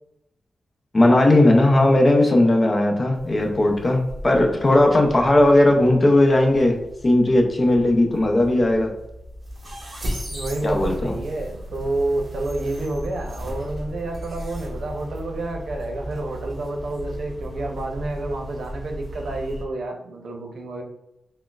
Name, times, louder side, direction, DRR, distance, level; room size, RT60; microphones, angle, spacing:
voice 1, 0.9-8.9 10.6-11.1, left 1 dB, 25° left, 2 dB, 0.5 m, -17 dB
sound 1, 3.1-19.6, equal, 30° right, 1.4 m, -36 dB
voice 2, 10.3-20.8, right 2 dB, 75° right, 2 dB, 0.7 m, -29 dB
6.1 x 2.1 x 2.3 m, 0.85 s
wide cardioid pair, 165°, 0 cm